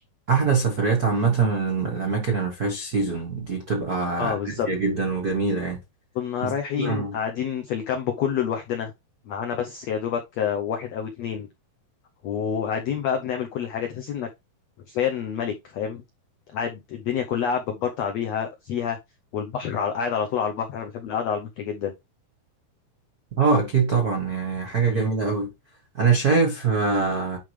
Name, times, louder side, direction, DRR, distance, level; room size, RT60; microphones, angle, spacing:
voice 1, 0.3-5.8 6.4-7.2 23.4-25.5 26.0-27.4, right 4 dB, 80° right, 0.8 m, -23 dB
voice 2, 4.2-4.7 6.1-8.9 9.3-11.5 12.2-14.3 14.9-16.0 16.5-19.0 19.3-21.9 24.9-25.1, left 8 dB, 85° left, 1.4 m, -28 dB
10.5 x 3.7 x 3.3 m
omnidirectional pair, 4.3 m